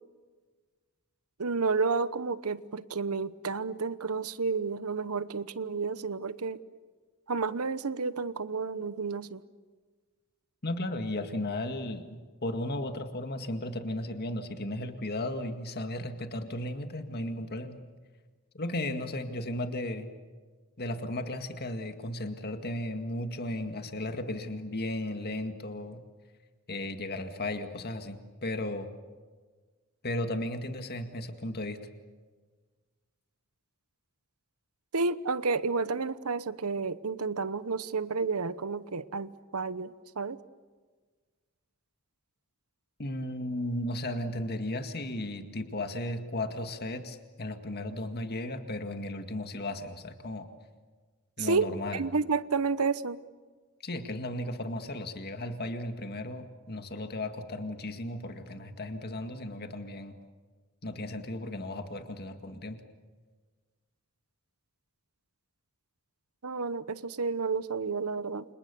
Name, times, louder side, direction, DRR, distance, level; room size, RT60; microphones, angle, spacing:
voice 1, 1.4-6.6 7.3-9.4 34.9-40.4 51.4-53.2 66.4-68.4, right 4 dB, 80° right, 15 dB, 1.0 m, -31 dB
voice 2, 10.6-17.8 18.5-20.1 20.8-26.0 26.7-28.9 30.0-31.8 43.0-50.5 51.4-52.0 53.8-60.1 60.8-62.8, left 1 dB, 45° left, 7 dB, 2.0 m, -35 dB
30.0 x 27.0 x 7.0 m, 1.4 s
head